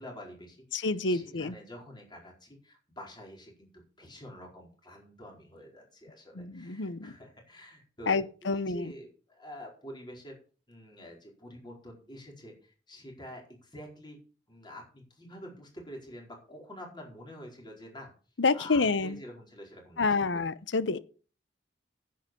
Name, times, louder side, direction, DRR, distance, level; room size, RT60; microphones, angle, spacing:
voice 1, 0.0-3.7 4.0-10.4 10.7-14.2 14.5-18.1 18.5-20.5, equal, 25° left, 4.5 m, -47 dB
voice 2, 0.7-1.5 6.3-7.1 8.1-8.9 18.4-19.2 20.0-21.0, left 4 dB, 75° left, 0.8 m, -28 dB
10.0 x 7.7 x 6.9 m
head